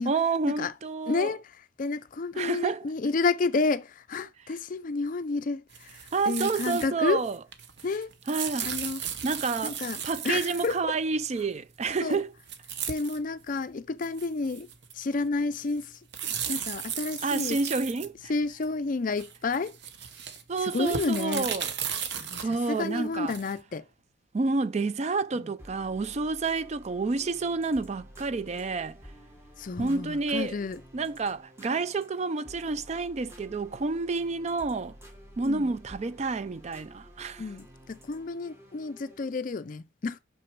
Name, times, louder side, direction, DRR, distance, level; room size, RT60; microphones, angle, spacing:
voice 1, 0.1-1.3 2.3-2.8 6.1-7.4 8.3-8.7 9.2-9.8 10.0-12.3 17.2-18.3 20.5-21.7 22.3-23.3 24.3-29.0 29.8-30.5 30.9-35.0 35.4-37.4, right 3 dB, 30° right, 0.3 m, -29 dB
voice 2, 1.1-7.3 7.8-8.1 8.6-9.0 9.6-11.0 12.0-12.2 12.9-14.7 14.9-17.6 18.3-19.8 20.6-21.5 22.2-23.9 25.4-25.5 29.6-30.8 35.4-35.7 37.4-40.2, left 3 dB, 40° left, 0.4 m, -30 dB
sound 1, 5.7-6.9 7.1-10.8 12.1-12.2 12.5-13.2 13.6-13.7 14.0-15.1 15.5-18.7 19.1-23.6, right 8 dB, 55° right, 0.9 m, -36 dB
sound 2, 25.6-39.4, equal, 10° right, 1.3 m, -51 dB
6.0 x 5.9 x 4.6 m
head